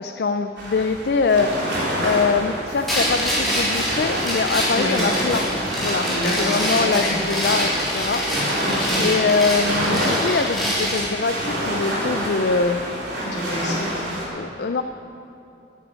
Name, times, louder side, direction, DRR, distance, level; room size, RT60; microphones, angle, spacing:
voice 1, 0.0-1.6 2.0-5.5 5.8-8.3 8.9-12.8 14.3-14.8, left 4 dB, 65° left, 7 dB, 0.4 m, -23 dB
sound 1, 0.6-14.3, equal, 85° right, 3.8 m, -28 dB
sound 2, 2.9-11.1, equal, ahead, 3.6 m, -25 dB
voice 2, 6.1-7.1 8.6-9.0 13.2-14.0, left 1 dB, 80° left, -4 dB, 3.2 m, -27 dB
10.0 x 9.8 x 9.1 m, 2.8 s
head